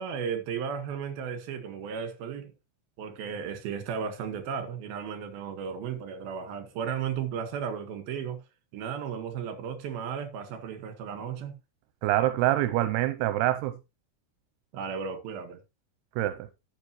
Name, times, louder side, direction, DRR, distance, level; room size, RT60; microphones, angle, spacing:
voice 1, 0.0-2.5 3.0-8.4 8.7-11.5 14.7-15.6, right 7 dB, 70° right, 3.5 m, -34 dB
voice 2, 12.0-13.7 16.2-16.5, right 14 dB, 85° right, 2.7 m, -25 dB
12.0 x 8.1 x 3.1 m
omnidirectional pair, 4.6 m